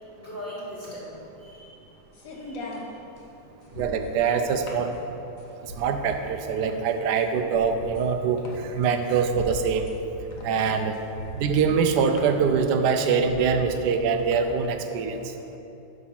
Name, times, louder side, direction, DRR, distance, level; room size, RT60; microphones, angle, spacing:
voice 1, 0.1-1.9 2.3-3.0, equal, 5° right, -8 dB, 1.5 m, -40 dB
sound 1, 0.8-14.7, left 2 dB, 55° left, 1.2 m, -41 dB
voice 2, 3.8-4.9 5.8-8.4 8.7-9.9 10.4-11.0 11.3-15.2, right 6 dB, 75° right, 7 dB, 1.1 m, -24 dB
6.1 x 5.8 x 5.8 m, 3.0 s
omnidirectional pair, 1.8 m